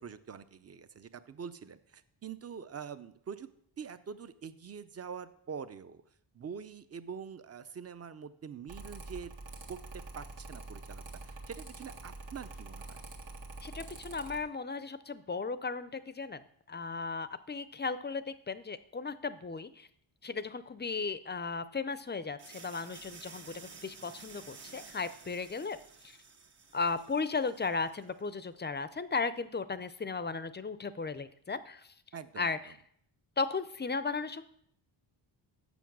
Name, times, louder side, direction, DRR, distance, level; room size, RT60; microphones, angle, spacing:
voice 1, 0.0-3.5 3.8-6.0 6.3-9.3 9.7-9.8 10.1-13.0 32.1-32.7, right 6 dB, 30° right, 13 dB, 0.6 m, -45 dB
Mechanical fan, 8.7-14.4, right 2 dB, 70° right, 1.7 m, -46 dB
voice 2, 13.6-16.4 16.7-19.9 20.2-25.8 26.0-26.2 26.7-31.9 32.4-32.6 33.4-34.4, left 4 dB, 25° left, 14 dB, 0.5 m, -36 dB
sound 1, 22.4-28.1, right 5 dB, 55° right, 1.5 m, -53 dB
7.1 x 7.0 x 6.0 m, 0.67 s
cardioid pair, 95°, 48 cm